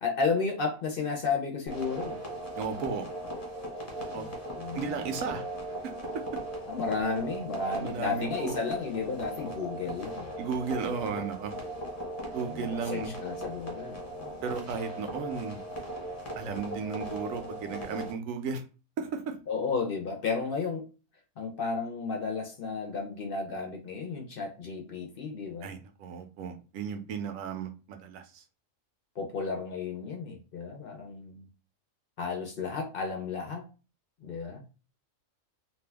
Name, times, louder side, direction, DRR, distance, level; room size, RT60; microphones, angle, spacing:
voice 1, 0.0-2.2 4.1-4.3 4.6-5.0 6.6-10.3 12.4-14.4 19.5-20.8 21.4-25.7 29.2-31.4 32.2-33.6 34.2-34.6, left 4 dB, 55° left, 0.7 m, -33 dB
sound 1, 1.7-18.1, right 1 dB, 30° left, 1.1 m, -38 dB
voice 2, 2.6-3.1 3.9-4.3 4.7-5.5 5.8-5.9 7.8-8.6 10.4-11.6 12.3-13.1 14.4-15.6 16.4-18.6 19.0-19.4 25.6-28.4, right 5 dB, 80° right, 1.0 m, -35 dB
2.7 x 2.2 x 3.3 m
omnidirectional pair, 1.4 m